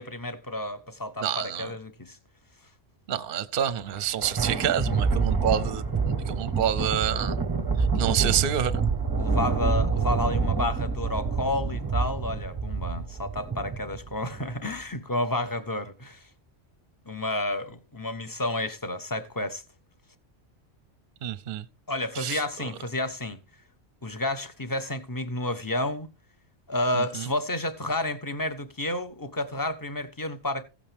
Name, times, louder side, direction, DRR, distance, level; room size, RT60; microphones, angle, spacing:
voice 1, 0.0-2.2 9.2-16.2 17.1-19.6 21.9-23.4 24.0-26.1 26.7-30.6, left 1 dB, 20° left, 1.0 m, -30 dB
voice 2, 1.2-1.7 3.1-5.8 6.3-7.4 8.0-8.8 21.2-21.6 22.1-22.7 26.9-27.3, right 9 dB, 55° right, 0.8 m, -28 dB
Thunder, 3.8-14.5, right 4 dB, 20° right, 0.8 m, -27 dB
15.5 x 8.7 x 3.5 m
omnidirectional pair, 1.2 m